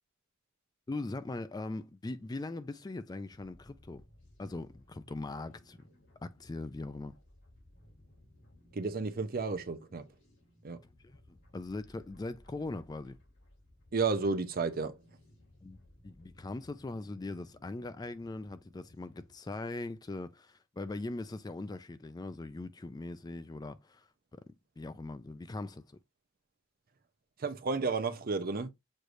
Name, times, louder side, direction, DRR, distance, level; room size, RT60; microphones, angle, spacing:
voice 1, 0.9-4.0 4.4-5.8 6.2-7.1 11.0-13.2 15.6-15.8 16.0-24.1 24.3-24.4 24.8-25.8, left 2 dB, 20° left, 0.3 m, -40 dB
sound 1, 2.9-19.4, left 1 dB, 65° left, 3.1 m, -61 dB
voice 2, 8.7-10.0 10.6-10.8 13.9-15.0 27.4-28.7, right 4 dB, 45° right, 0.6 m, -32 dB
6.4 x 3.1 x 2.5 m
head